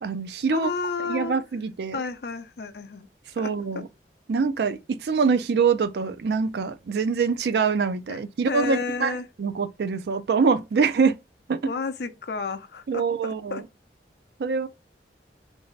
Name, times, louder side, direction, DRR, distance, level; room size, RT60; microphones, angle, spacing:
voice 1, 0.0-0.7 1.0-2.0 3.4-3.9 4.3-11.2 11.5-11.7 12.9-13.6 14.4-14.7, right 5 dB, 65° right, 0.4 m, -24 dB
voice 2, 0.5-1.4 1.9-3.1 3.4-3.8 8.1-8.2 8.5-9.3 11.6-13.6, left 4 dB, 65° left, 0.5 m, -32 dB
3.2 x 2.6 x 3.1 m
head